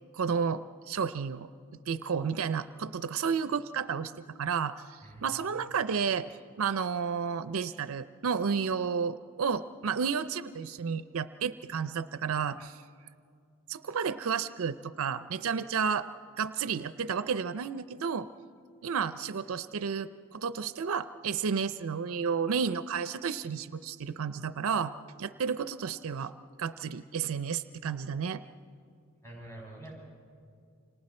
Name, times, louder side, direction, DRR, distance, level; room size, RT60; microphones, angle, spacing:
voice 1, 0.1-1.5 1.9-4.1 4.4-6.3 6.6-12.8 13.7-16.1 16.4-18.3 18.8-24.9 25.2-26.3 26.6-28.4, right 6 dB, 65° right, 13 dB, 0.5 m, -31 dB
voice 2, 5.0-5.6 29.2-29.9, right 1 dB, 10° left, -3 dB, 6.7 m, -47 dB
29.5 x 26.0 x 4.3 m, 2.3 s
head